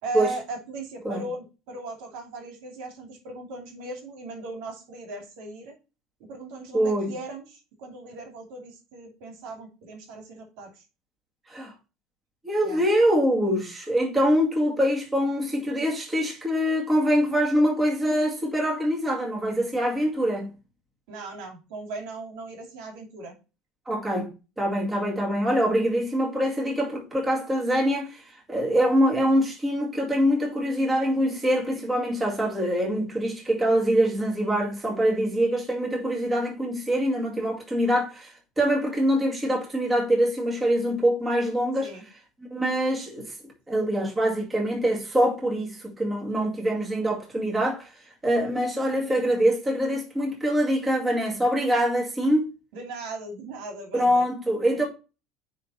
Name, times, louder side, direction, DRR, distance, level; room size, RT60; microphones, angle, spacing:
voice 1, 0.0-5.7 6.3-10.7 12.6-12.8 21.1-23.3 41.8-42.0 52.7-54.3, right 2 dB, 75° right, 2.6 m, -38 dB
voice 2, 6.7-7.1 11.5-11.7 12.4-20.5 23.9-24.3 24.6-41.9 42.5-43.3 43.7-47.9 48.2-52.5 53.9-54.9, equal, 15° right, 2.1 m, -24 dB
9.6 x 3.8 x 4.1 m
cardioid pair, 145°, 0 cm